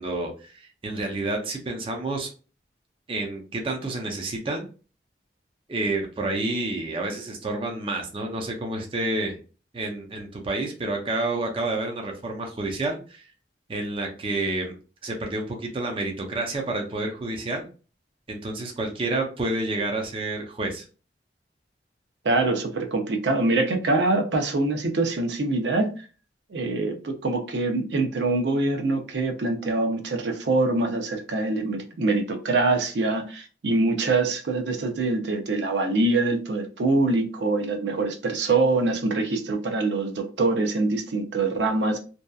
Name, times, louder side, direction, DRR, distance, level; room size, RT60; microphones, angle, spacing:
voice 1, 0.0-2.3 3.1-4.7 5.7-9.4 9.7-13.2 13.7-14.7 15.0-17.7 18.3-20.8, right 2 dB, 30° right, 0.4 m, -29 dB
voice 2, 22.2-25.9 26.5-42.0, right 2 dB, 80° right, 0.5 m, -24 dB
2.7 x 2.3 x 2.3 m
head